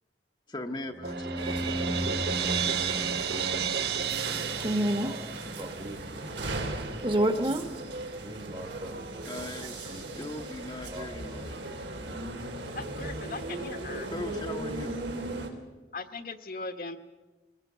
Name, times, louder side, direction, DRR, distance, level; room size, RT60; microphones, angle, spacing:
voice 1, 0.5-3.0 6.7-6.8 9.2-11.8 14.1-14.9, left 1 dB, 25° left, 3 dB, 0.9 m, -41 dB
sound 1, 0.9-5.5, equal, 10° right, 0.9 m, -36 dB
Crash cymbal, 1.0-6.0, right 7 dB, 60° right, 0.7 m, -32 dB
sound 2, 1.4-15.5, right 2 dB, 90° right, 2.9 m, -37 dB
voice 2, 4.6-5.3 5.6-7.7 8.2-9.0 9.4-9.5 9.9-10.0 10.9-11.1, right 1 dB, 25° right, 8 dB, 1.2 m, -31 dB
voice 3, 12.7-14.1 15.9-17.0, left 3 dB, 50° left, 8 dB, 1.2 m, -39 dB
23.0 x 19.5 x 6.8 m, 1.2 s
head